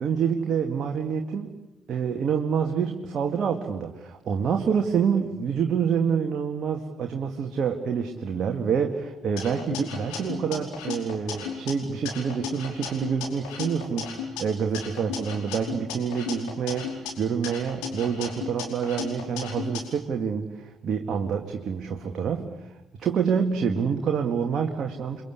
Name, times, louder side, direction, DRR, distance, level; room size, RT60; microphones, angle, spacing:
voice 1, 0.0-1.6 1.9-22.7 23.0-25.2, right 6 dB, 50° right, 3 dB, 2.1 m, -27 dB
sound 1, 9.4-11.7 12.1-14.4 14.7-17.1 17.4-19.8, left 6 dB, 70° left, 4.9 m, -35 dB
29.5 x 23.5 x 8.3 m, 0.95 s
figure-of-eight pair, 45°, 0 cm